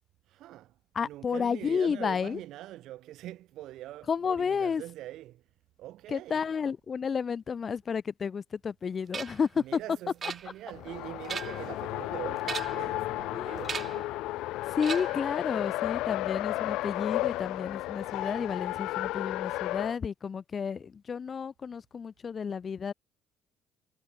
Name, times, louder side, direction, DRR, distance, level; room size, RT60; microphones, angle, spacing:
voice 1, 0.3-5.4 5.8-6.4 9.6-14.2, right 14 dB, 75° right, 1.8 m, -43 dB
voice 2, 0.9-2.4 4.1-4.8 6.1-9.8 13.3-13.6 14.8-22.9, left 6 dB, 40° left, 1.8 m, -31 dB
sound 1, 9.1-9.5 10.2-10.8 11.1-11.7 12.4-12.9 13.6-14.1 14.8-15.3, right 6 dB, 40° right, 0.5 m, -37 dB
Race car auto racing, 10.7-20.0, left 17 dB, 80° left, 1.5 m, -33 dB
cardioid pair, 95°, 0 cm